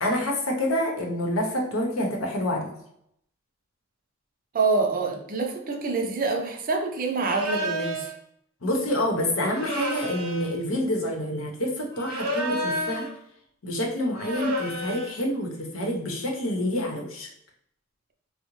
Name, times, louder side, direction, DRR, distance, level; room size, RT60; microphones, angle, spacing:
voice 1, 0.0-2.7 8.6-13.1 13.6-17.3, left 1 dB, 80° left, 1 dB, 0.8 m, -27 dB
voice 2, 4.5-8.1, right 3 dB, 45° right, 2 dB, 0.5 m, -26 dB
sound 1, 7.2-8.1 9.5-10.6 11.9-13.2 14.2-15.2, equal, 85° right, 0.7 m, -30 dB
3.7 x 2.1 x 3.0 m, 0.73 s
head